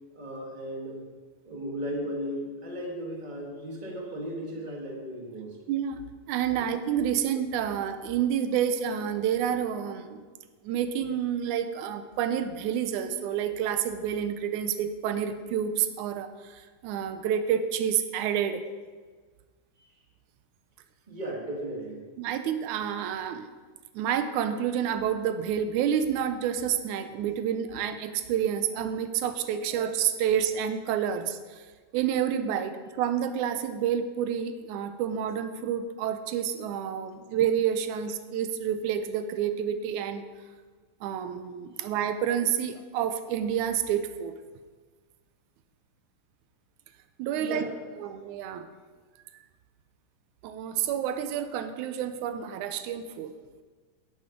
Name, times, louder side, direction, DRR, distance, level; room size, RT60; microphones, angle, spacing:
voice 1, 0.1-1.1 1.4-5.6 6.5-6.7 21.1-22.1 47.3-48.0, right 1 dB, 30° right, -1 dB, 0.8 m, -36 dB
voice 2, 5.7-6.0 6.3-10.2 10.6-18.6 22.2-23.5 23.9-31.6 31.9-40.3 41.0-44.3 47.2-47.7 48.0-48.7 50.4-53.3, right 9 dB, 75° right, 9 dB, 1.9 m, -29 dB
12.0 x 8.1 x 5.1 m, 1.4 s
omnidirectional pair, 3.9 m